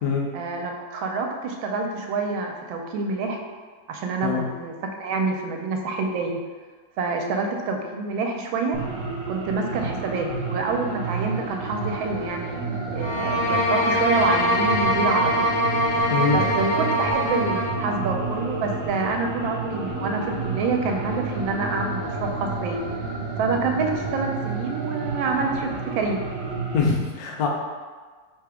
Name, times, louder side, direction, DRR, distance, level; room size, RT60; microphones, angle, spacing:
voice 1, 0.3-3.4 3.9-6.4 7.0-8.8 9.3-12.7 12.9-15.6 16.3-22.8 23.4-26.2, right 3 dB, 85° right, 3 dB, 1.4 m, -27 dB
sound 1, 8.7-26.8, right 3 dB, 65° right, 1.2 m, -31 dB
sound 2, 13.0-17.8, equal, 85° left, 1.6 m, -23 dB
voice 2, 16.1-16.5 26.7-27.5, left 5 dB, 65° left, -1 dB, 1.0 m, -23 dB
3.6 x 2.8 x 4.8 m, 1.5 s
omnidirectional pair, 2.1 m